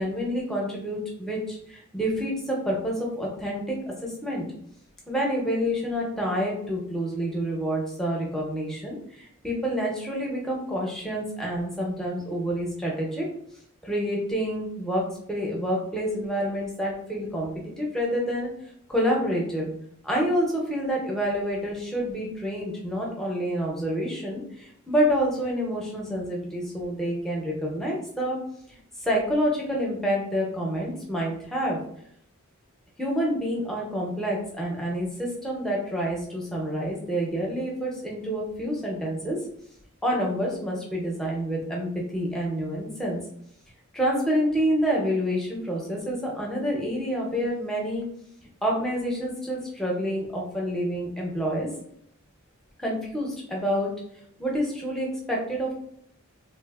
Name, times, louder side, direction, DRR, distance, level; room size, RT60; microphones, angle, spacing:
voice 1, 0.0-4.4 5.1-13.3 13.8-18.5 18.9-19.7 20.0-28.4 28.7-31.8 33.0-39.4 40.0-43.2 43.9-48.0 48.6-51.7 52.8-53.9 54.4-55.7, equal, ahead, -3 dB, 0.6 m, -28 dB
3.7 x 2.5 x 2.3 m, 0.70 s
head